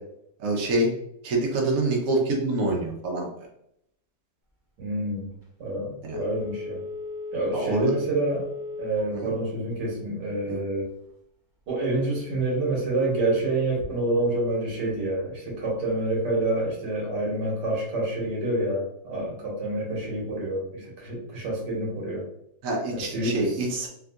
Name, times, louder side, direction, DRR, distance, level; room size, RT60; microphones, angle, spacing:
voice 1, 0.4-0.9 1.2-3.5 6.0-6.2 7.5-7.9 9.1-9.3 10.5-10.6 22.6-23.9, right 2 dB, 60° right, -1 dB, 1.1 m, -26 dB
voice 2, 4.8-5.3 5.6-6.8 7.3-8.5 8.8-10.9 11.7-22.2 22.9-23.5, right 2 dB, 80° right, -3 dB, 1.7 m, -27 dB
Telephone, 6.0-9.2 9.6-9.7, left 3 dB, 40° right, 0.7 m, -35 dB
3.6 x 2.6 x 2.3 m, 0.75 s
omnidirectional pair, 1.9 m